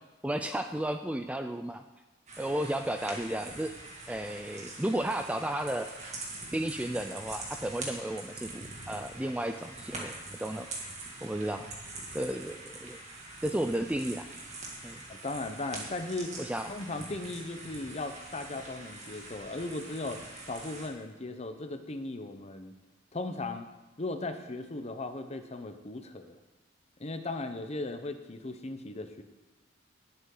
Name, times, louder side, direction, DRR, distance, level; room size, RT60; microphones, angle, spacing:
voice 1, 0.2-1.8 2.4-3.7 4.1-5.9 6.5-10.1 10.4-10.7 11.2-11.7 12.1-13.0 13.4-14.3 14.8-15.0 16.4-16.7, right 1 dB, 5° right, 7 dB, 0.4 m, -33 dB
sound 1, 2.3-20.9, right 2 dB, 35° right, 2.2 m, -44 dB
voice 2, 15.1-16.4 16.7-22.7 23.1-23.7 24.0-26.4 27.0-29.2, left 2 dB, 30° left, 8 dB, 0.8 m, -37 dB
18.0 x 8.3 x 3.9 m, 1.2 s
head